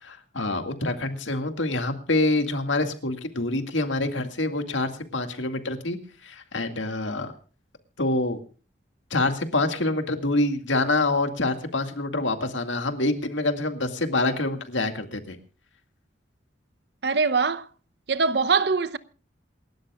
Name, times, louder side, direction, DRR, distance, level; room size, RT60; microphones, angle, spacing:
voice 1, 0.0-6.0 6.2-7.3 8.0-8.4 9.1-15.4, left 2 dB, 90° left, 2.1 m, -26 dB
voice 2, 17.0-17.7 18.1-19.0, right 4 dB, 60° right, 0.8 m, -22 dB
28.0 x 13.0 x 2.4 m
head